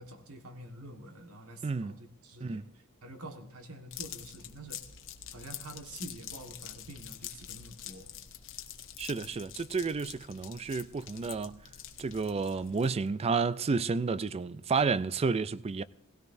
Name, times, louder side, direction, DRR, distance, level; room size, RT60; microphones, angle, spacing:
voice 1, 0.0-2.6 3.0-4.8 5.3-8.1, right 1 dB, 75° right, 1.5 m, -47 dB
voice 2, 1.6-2.0 2.4-2.7 9.0-11.6 12.0-15.8, right 4 dB, 30° right, 0.3 m, -31 dB
sound 1, 3.9-13.1, left 10 dB, 60° left, 1.0 m, -46 dB
18.0 x 16.5 x 2.7 m
head